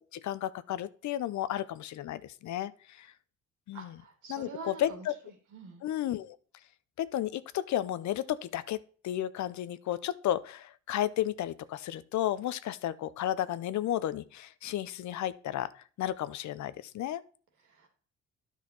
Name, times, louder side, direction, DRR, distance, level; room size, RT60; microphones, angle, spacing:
voice 1, 0.0-3.1 3.7-4.0 4.3-5.1 5.8-6.4 7.0-15.7 16.0-17.2, left 12 dB, 70° left, 16 dB, 0.6 m, -33 dB
voice 2, 3.7-5.1 5.5-5.8 17.6-17.9, right 4 dB, 80° right, 3 dB, 2.6 m, -45 dB
10.0 x 5.6 x 4.3 m, 0.42 s
cardioid pair, 90°, 30 cm